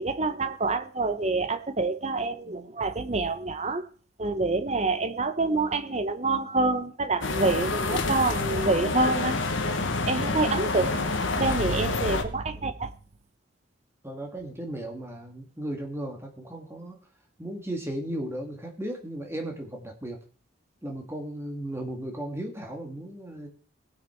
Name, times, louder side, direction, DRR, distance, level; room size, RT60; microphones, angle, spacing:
voice 1, 0.0-3.8 4.2-9.4 10.1-10.9 11.4-12.9, right 3 dB, 35° right, 0.8 m, -27 dB
sound 1, 7.2-12.2, left 3 dB, 70° left, 1.3 m, -28 dB
voice 2, 10.7-11.1 12.6-12.7 14.0-17.0 17.4-20.2 20.8-23.5, right 1 dB, 10° right, 2.0 m, -36 dB
18.5 x 6.3 x 4.5 m
head